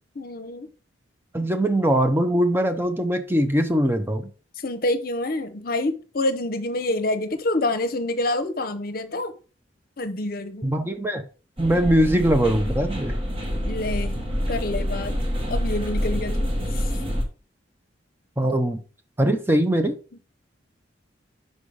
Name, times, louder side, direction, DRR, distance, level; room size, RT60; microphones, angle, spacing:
voice 1, 0.1-0.7 4.6-9.3 10.0-10.7 13.7-15.2 15.5-16.9, left 2 dB, 50° left, 0.8 m, -27 dB
voice 2, 1.3-4.3 10.6-11.2 11.6-13.1 18.4-18.8 19.2-20.0, right 1 dB, 10° right, 0.6 m, -21 dB
sound 1, 11.6-17.2, equal, 30° right, 1.3 m, -27 dB
5.6 x 5.4 x 4.7 m
head